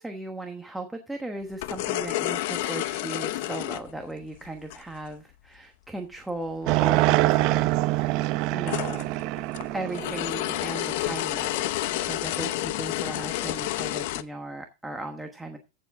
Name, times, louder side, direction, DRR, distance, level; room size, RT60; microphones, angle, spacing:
voice 1, 0.0-8.2 8.5-9.1 9.7-11.7 12.0-15.6, right 2 dB, 5° right, 4 dB, 1.2 m, -37 dB
sound 1, 1.5-4.9 6.7-6.8 7.0-7.1 7.9-14.2, left 15 dB, 55° left, 0.8 m, -30 dB
sound 2, 6.7-11.0, right 18 dB, 45° right, 0.6 m, -25 dB
15.0 x 7.2 x 3.6 m, 0.29 s
supercardioid pair, 155°, 0 cm